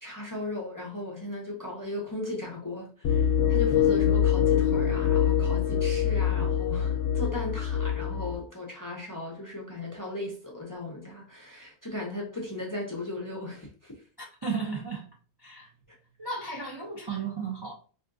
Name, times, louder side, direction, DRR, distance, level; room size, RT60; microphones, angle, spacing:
voice 1, 0.0-13.9, left 1 dB, 25° left, 0.5 m, -37 dB
sound 1, 3.0-8.4, left 8 dB, 70° left, 0.8 m, -24 dB
voice 2, 14.2-15.1 15.4-15.7 16.2-17.7, right 4 dB, 35° right, 0.4 m, -34 dB
3.5 x 2.5 x 2.6 m
omnidirectional pair, 1.1 m